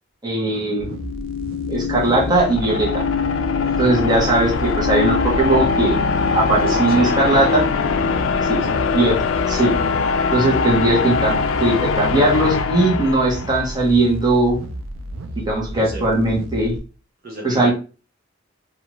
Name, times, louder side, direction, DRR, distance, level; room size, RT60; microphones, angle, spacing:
voice 1, 0.2-0.9 1.7-3.0 3.8-6.0 6.3-7.6 8.5-8.6 8.9-9.2 9.5-9.7 10.3-14.6 15.5-16.7 17.4-17.7, right 2 dB, 20° right, -3 dB, 1.0 m, -19 dB
sound 1, 0.7-13.9, left 5 dB, 85° left, 0.3 m, -22 dB
sound 2, 0.8-16.8, right 1 dB, 80° right, 0.4 m, -33 dB
voice 2, 6.6-7.6 8.1-9.1 15.7-16.0 17.2-17.7, right 1 dB, 50° right, -1 dB, 0.8 m, -35 dB
2.6 x 2.4 x 3.0 m, 0.34 s
head